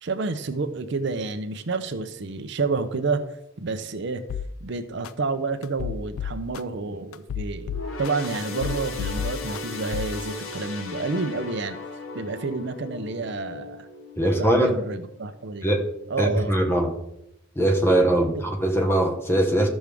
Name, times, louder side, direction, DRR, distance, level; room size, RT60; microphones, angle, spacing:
voice 1, 0.0-3.2 3.6-4.2 4.6-11.8 12.1-13.9 14.4-15.7 16.1-16.5 18.1-18.4, right 3 dB, 55° right, 9 dB, 0.6 m, -29 dB
sound 1, 4.3-4.5 5.0-5.1 5.6-6.6 7.1-8.3 8.6-9.6 9.9-10.2, left 8 dB, 90° left, 0.4 m, -30 dB
sound 2, 7.7-15.4 15.8-16.0 16.8-16.9, left 4 dB, 70° left, 1.0 m, -37 dB
voice 2, 14.2-14.8 15.6-15.9 16.2-16.9 17.6-19.7, right 1 dB, 10° left, 3 dB, 1.1 m, -21 dB
13.5 x 6.2 x 3.5 m, 0.81 s
head